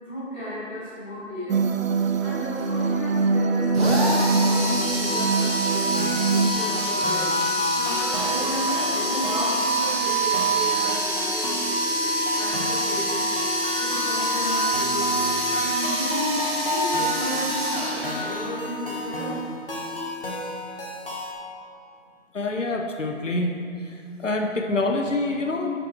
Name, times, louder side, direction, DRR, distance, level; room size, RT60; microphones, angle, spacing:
voice 1, 0.0-19.4, equal, 10° left, -18 dB, 1.5 m, -34 dB
sound 1, 1.5-6.5, right 4 dB, 80° right, 0.5 m, -23 dB
sound 2, 3.7-18.6, right 1 dB, 50° right, 1.6 m, -25 dB
sound 3, 5.9-21.3, left 1 dB, 45° left, 1.1 m, -33 dB
voice 2, 22.3-23.5 24.2-25.7, left 2 dB, 70° left, 2 dB, 0.7 m, -25 dB
10.5 x 5.2 x 2.9 m, 2.5 s
figure-of-eight pair, 175°, 39 cm